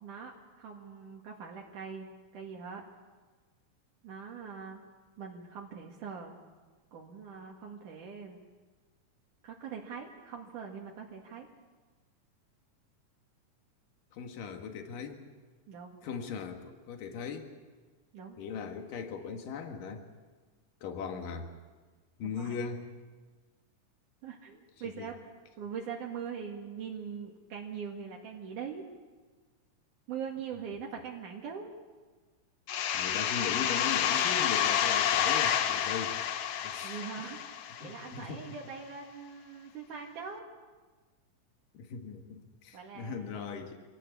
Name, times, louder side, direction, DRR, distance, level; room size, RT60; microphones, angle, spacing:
voice 1, 0.0-2.8 4.0-4.8 5.2-6.4 6.9-8.4 9.4-11.5 15.7-16.0 18.1-18.4 22.2-22.6 24.2-25.2 25.6-28.8 30.1-31.7 36.8-40.4 42.7-43.5, right 6 dB, 70° right, -1 dB, 3.4 m, -42 dB
voice 2, 14.1-15.2 16.0-17.5 18.4-20.1 20.8-21.5 22.2-22.8 25.0-25.1 32.9-36.2 36.6-37.3 37.8-38.4 41.7-43.8, left 6 dB, 80° left, 5 dB, 3.4 m, -39 dB
sound 1, 32.7-38.2, left 9 dB, 65° left, 1.7 m, -29 dB
26.0 x 17.5 x 8.5 m, 1.4 s
omnidirectional pair, 3.8 m